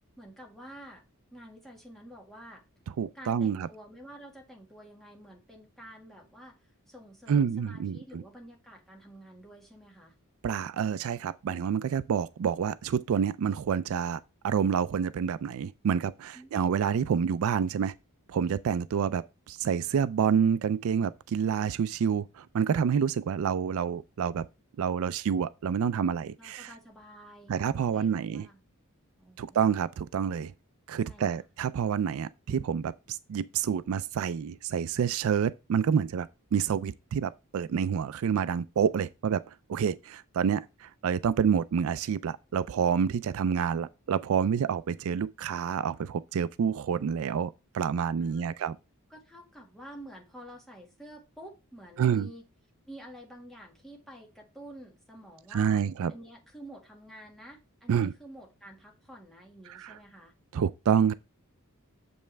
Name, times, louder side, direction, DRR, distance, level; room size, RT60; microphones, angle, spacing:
voice 1, 0.2-1.0 1.3-2.6 3.1-6.6 6.9-10.1 16.3-16.5 26.4-28.6 29.2-29.6 30.9-31.5 48.2-48.5 49.1-52.4 52.9-55.8 56.1-60.3, right 1 dB, ahead, 1.9 m, -49 dB
voice 2, 3.0-3.7 7.3-8.2 10.4-17.9 18.3-24.5 24.8-26.7 27.5-28.5 29.4-30.5 30.9-48.7 52.0-52.3 55.5-56.1 57.9-58.1 59.7-59.9 60.5-61.1, right 7 dB, 65° right, 0.3 m, -28 dB
7.4 x 5.4 x 3.3 m
head